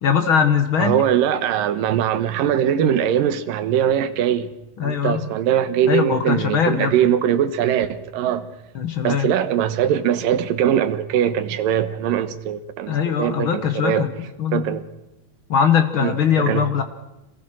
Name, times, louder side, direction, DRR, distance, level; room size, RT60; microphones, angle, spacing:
voice 1, 0.0-1.0 4.8-5.3 5.9-6.9 8.7-9.3 12.9-14.1 14.4-14.8 15.5-16.8, left 7 dB, 80° left, 1.1 m, -20 dB
voice 2, 0.8-4.5 4.8-8.5 9.0-12.9 13.2-14.0 14.5-14.8 16.0-16.1 16.4-16.7, right 10 dB, 70° right, 2.6 m, -21 dB
26.5 x 20.0 x 6.3 m
omnidirectional pair, 4.5 m